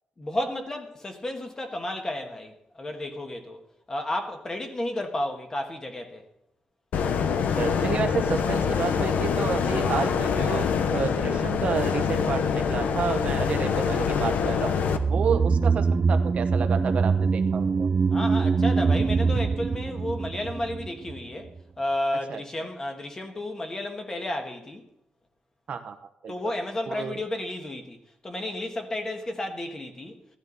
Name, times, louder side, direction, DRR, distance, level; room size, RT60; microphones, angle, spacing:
voice 1, 0.2-3.6 3.9-6.2 18.1-24.8 26.3-30.2, left 1 dB, 20° left, 1.6 m, -32 dB
sound 1, 6.9-15.0, left 6 dB, 75° left, 1.0 m, -25 dB
voice 2, 7.6-10.6 10.9-17.9 22.3-22.7 25.7-26.0 26.2-26.5 26.9-27.2, right 6 dB, 50° right, 1.0 m, -30 dB
sound 2, 14.8-21.2 21.4-21.5, right 4 dB, 30° right, 0.3 m, -24 dB
15.5 x 12.0 x 4.0 m
wide cardioid pair, 165°, 3 cm